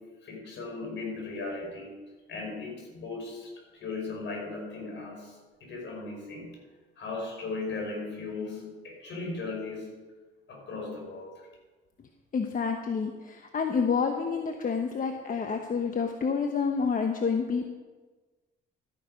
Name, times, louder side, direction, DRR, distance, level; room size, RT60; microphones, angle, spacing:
voice 1, 0.0-2.0 2.3-5.3 5.6-6.6 7.0-10.0 10.5-11.4, left 3 dB, 65° left, 0 dB, 5.0 m, -37 dB
voice 2, 12.3-17.7, left 5 dB, 45° left, 4 dB, 1.1 m, -28 dB
13.5 x 9.7 x 5.2 m, 1.3 s
cardioid pair, 90°, 20 cm